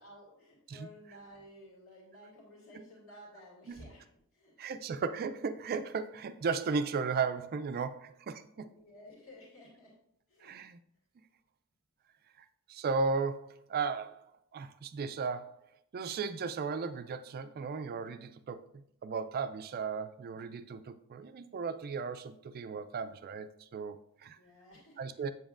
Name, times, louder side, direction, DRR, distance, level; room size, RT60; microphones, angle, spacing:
voice 1, 0.0-4.1 4.3-4.7 8.5-9.9 10.3-10.5 24.3-25.3, equal, 65° left, 2.3 m, -54 dB
voice 2, 4.6-8.7 10.4-10.8 12.7-14.2 14.5-15.6 15.9-24.4 25.0-25.3, right 5 dB, 45° right, 0.3 m, -35 dB
7.9 x 7.1 x 2.5 m
head